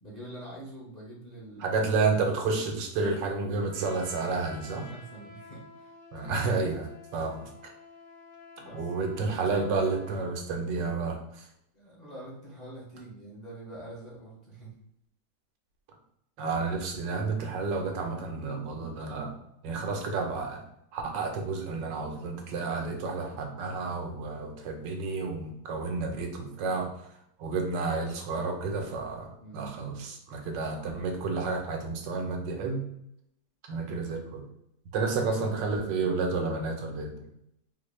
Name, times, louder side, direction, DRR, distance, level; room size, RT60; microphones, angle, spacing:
voice 1, 0.0-1.8 4.8-5.9 8.6-8.9 11.7-14.7 29.4-29.8 34.9-35.4, right 1 dB, 30° left, -7 dB, 0.9 m, -45 dB
voice 2, 1.6-4.9 6.1-7.7 8.7-11.5 16.4-19.4 19.6-20.6 20.9-26.9 27.4-32.8 33.7-34.4 34.9-37.3, right 4 dB, 85° right, 3 dB, 1.4 m, -31 dB
Trumpet, 3.6-10.3, left 3 dB, 65° left, 2.1 m, -50 dB
4.2 x 2.2 x 3.1 m, 0.77 s
omnidirectional pair, 1.9 m